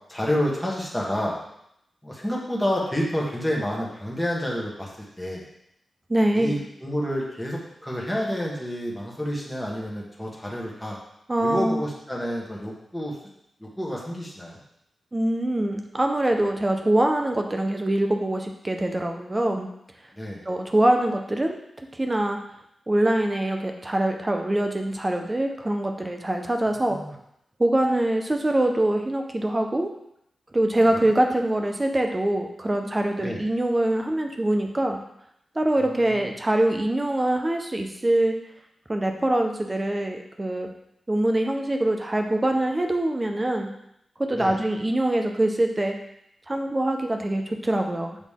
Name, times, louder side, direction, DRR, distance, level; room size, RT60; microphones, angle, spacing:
voice 1, 0.1-1.4 2.0-4.9 5.2-5.5 6.3-11.0 11.4-13.1 13.6-14.6 20.1-20.4 26.9-27.1 30.9-31.0 33.2-33.4 35.8-36.3 44.3-44.6, equal, 5° left, -4 dB, 1.5 m, -29 dB
voice 2, 6.1-6.6 11.3-11.8 15.1-19.7 20.5-21.6 21.9-22.4 22.9-27.0 27.6-29.9 30.5-35.0 35.6-38.4 38.9-40.7 41.1-43.7 44.2-46.0 46.5-48.2, right 1 dB, 15° right, 3 dB, 0.7 m, -24 dB
8.3 x 4.0 x 3.6 m, 0.76 s
wide cardioid pair, 170°, 0 cm